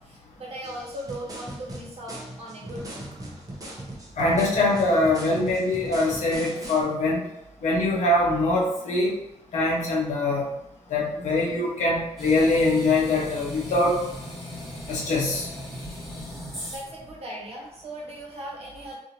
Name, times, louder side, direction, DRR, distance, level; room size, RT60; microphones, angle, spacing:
voice 1, 0.0-3.5 16.7-19.0, right 1 dB, 60° right, -3 dB, 1.0 m, -38 dB
sound 1, 0.6-6.8, right 1 dB, 30° right, 0.7 m, -39 dB
voice 2, 4.2-7.2 7.6-9.1 9.5-10.4 10.9-14.0 14.9-15.5, left 2 dB, 80° left, -3 dB, 0.8 m, -23 dB
sound 2, 12.2-17.0, equal, ahead, 1.3 m, -38 dB
2.6 x 2.5 x 2.8 m, 0.88 s
cardioid pair, 85°, 12 cm